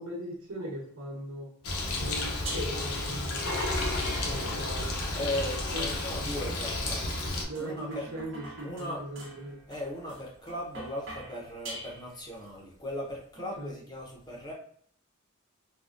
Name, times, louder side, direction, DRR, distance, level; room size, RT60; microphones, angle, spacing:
voice 1, 0.0-1.5 2.0-3.8 4.2-5.3 5.7-5.9 7.4-9.6 13.3-13.7, right 1 dB, 80° right, -3 dB, 1.1 m, -40 dB
Bird, 1.6-7.4, left 2 dB, 80° left, 0.7 m, -31 dB
sound 1, 2.5-3.0 4.0-4.6 5.6-12.4, right 2 dB, 60° right, 0.9 m, -46 dB
sound 2, 3.3-4.6 5.9-6.1 7.0-7.2, right 3 dB, 30° right, 0.7 m, -45 dB
voice 2, 4.2-4.7 5.1-7.0 7.6-8.1 8.6-9.0 9.7-14.5, left 1 dB, 20° left, -2 dB, 0.6 m, -37 dB
3.6 x 2.1 x 2.4 m, 0.62 s
head